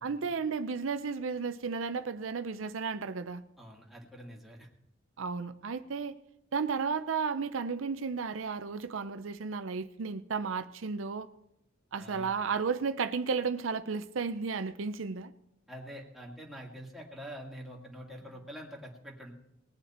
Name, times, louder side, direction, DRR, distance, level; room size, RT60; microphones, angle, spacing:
voice 1, 0.0-3.4 5.2-6.2 6.5-11.3 11.9-15.3, right 5 dB, 85° right, 11 dB, 0.6 m, -33 dB
voice 2, 3.6-4.7 12.0-12.4 15.7-19.3, equal, ahead, -2 dB, 2.1 m, -46 dB
19.5 x 9.2 x 4.3 m, 0.82 s
head